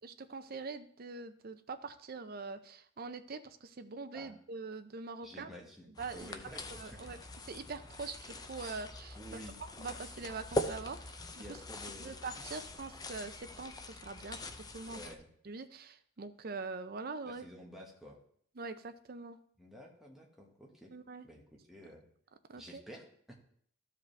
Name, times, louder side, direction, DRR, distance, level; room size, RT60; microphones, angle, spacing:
voice 1, 0.0-5.5 6.0-6.3 6.8-7.2 7.5-9.2 9.6-11.6 12.0-14.4 14.7-15.0 15.4-17.4 18.6-19.4 20.9-21.3 22.5-22.8, right 4 dB, 50° right, 9 dB, 0.5 m, -43 dB
voice 2, 5.2-7.2 9.1-9.6 11.4-12.5 14.8-15.3 17.2-18.2 19.6-20.9 21.2-22.1 22.5-23.3, equal, ahead, -2 dB, 1.4 m, -51 dB
sound 1, 6.0-15.2, left 1 dB, 20° left, 0.5 m, -42 dB
13.5 x 4.9 x 3.3 m, 0.63 s
head